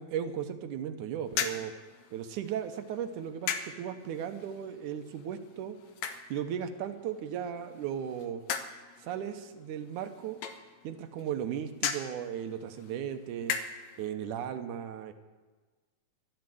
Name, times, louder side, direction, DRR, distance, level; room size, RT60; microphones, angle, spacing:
voice 1, 0.0-1.7 2.1-5.8 6.3-8.4 9.0-10.4 10.8-15.1, right 9 dB, 70° right, 7 dB, 2.2 m, -36 dB
sound 1, 1.2-14.0, left 8 dB, 85° left, 2.6 m, -40 dB
12.5 x 12.0 x 7.7 m, 1.3 s
omnidirectional pair, 3.9 m